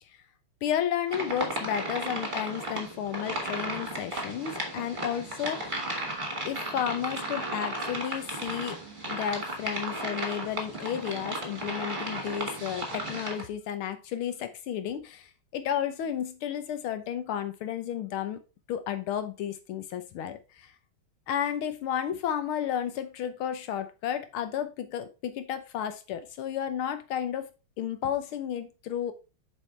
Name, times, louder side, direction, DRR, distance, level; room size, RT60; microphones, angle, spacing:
voice 1, 0.6-5.9 6.5-8.8 9.1-18.4 18.7-20.7 21.3-27.5 27.8-29.1, left 9 dB, 90° left, 1.7 m, -32 dB
sound 1, 1.1-13.4, right 1 dB, 25° right, 1.8 m, -34 dB
7.6 x 4.8 x 3.3 m
omnidirectional pair, 2.3 m